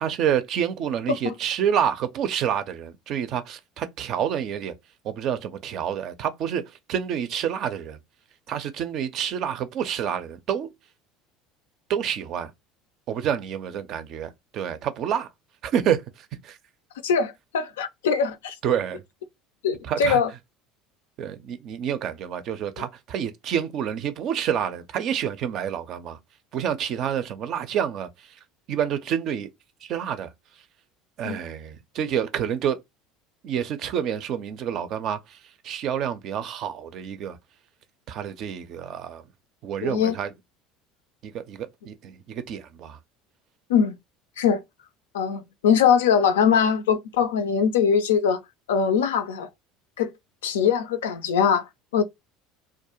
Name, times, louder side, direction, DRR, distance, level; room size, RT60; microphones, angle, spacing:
voice 1, 0.0-4.7 5.0-6.6 6.9-8.0 8.5-10.7 11.9-12.5 13.1-15.3 15.6-16.6 18.6-19.0 19.8-20.2 21.2-26.2 26.5-28.4 28.7-29.5 29.8-30.3 31.2-32.8 33.4-35.4 35.6-37.4 38.1-39.2 39.6-40.3 41.2-43.0, right 9 dB, 55° right, 0.4 m, -28 dB
voice 2, 17.0-18.6 19.6-20.3 31.2-31.4 39.8-40.2 43.7-44.0 44.4-44.6 45.1-48.4 48.7-49.5 50.0-50.1 50.4-52.0, left 7 dB, 80° left, 0.3 m, -22 dB
2.3 x 2.1 x 2.9 m
hypercardioid pair, 70°, 0 cm